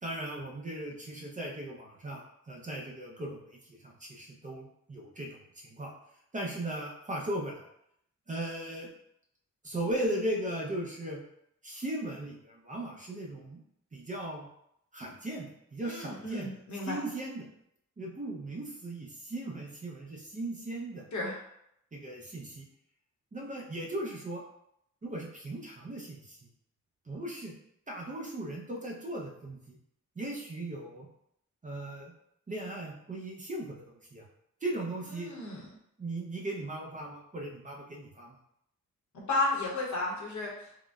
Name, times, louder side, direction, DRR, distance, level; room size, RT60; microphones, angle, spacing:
voice 1, 0.0-5.9 6.3-7.7 8.3-8.9 9.6-11.2 11.6-13.6 13.9-14.5 14.9-16.5 16.8-17.5 18.0-21.1 21.9-22.7 23.3-24.4 25.0-26.4 27.1-27.5 27.9-29.8 30.2-31.1 31.6-32.1 32.5-34.2 34.6-35.3 36.0-38.4, right 1 dB, 25° right, -2 dB, 0.5 m, -37 dB
voice 2, 15.8-17.0 21.1-21.4 35.2-35.7 39.3-40.8, left 2 dB, 65° left, -3 dB, 0.9 m, -33 dB
3.7 x 2.0 x 2.3 m, 0.75 s
wide cardioid pair, 105°, 31 cm